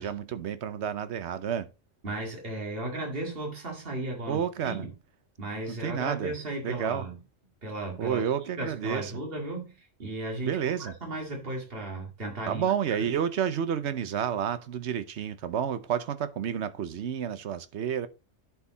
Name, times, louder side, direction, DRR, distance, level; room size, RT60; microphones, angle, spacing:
voice 1, 0.0-1.7 4.3-4.9 5.8-6.3 6.6-7.1 8.0-9.1 10.4-10.9 12.5-18.1, right 8 dB, 65° right, 1.0 m, -30 dB
voice 2, 2.0-4.9 5.4-7.2 7.6-8.2 8.6-10.5 10.8-13.1, right 2 dB, 50° right, 2.4 m, -35 dB
10.5 x 4.9 x 3.9 m
omnidirectional pair, 1.3 m